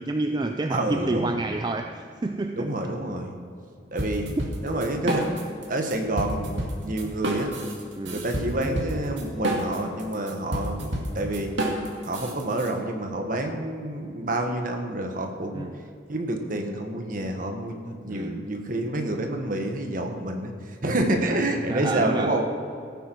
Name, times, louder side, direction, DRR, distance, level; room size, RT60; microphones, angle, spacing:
voice 1, 0.0-2.7 8.0-8.3 15.5-15.8 18.1-18.5 21.1-21.3 21.7-22.4, right 2 dB, 25° right, 5 dB, 0.4 m, -29 dB
voice 2, 0.7-1.3 2.6-3.3 3.9-4.3 4.6-5.3 5.7-7.5 8.1-11.5 12.0-15.6 16.1-20.5 20.8-22.4, right 1 dB, 45° right, 4 dB, 1.5 m, -28 dB
sound 1, 4.0-5.6 5.9-12.7, right 1 dB, 90° right, 2.2 m, -29 dB
16.0 x 9.4 x 4.6 m, 2.4 s
head